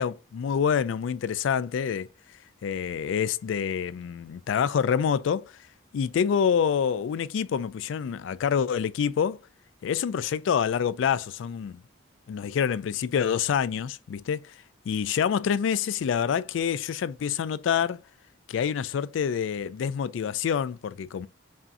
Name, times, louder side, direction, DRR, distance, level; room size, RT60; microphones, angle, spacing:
voice 1, 0.0-2.1 2.6-5.6 5.9-9.4 9.8-11.8 12.3-14.5 14.9-18.0 18.5-21.3, left 7 dB, 70° left, 0.3 m, -27 dB
5.5 x 2.6 x 2.5 m
head